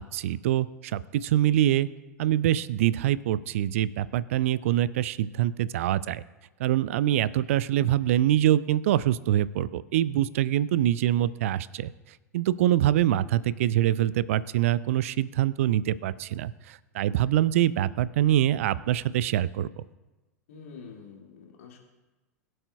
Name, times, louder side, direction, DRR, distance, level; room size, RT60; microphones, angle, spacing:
voice 1, 0.0-1.9 2.2-6.2 6.6-11.9 12.3-19.7, right 12 dB, 55° right, 19 dB, 0.4 m, -24 dB
voice 2, 20.5-21.8, left 5 dB, 60° left, 0 dB, 2.2 m, -46 dB
22.0 x 7.7 x 2.3 m, 1.1 s
figure-of-eight pair, 90°, 9 cm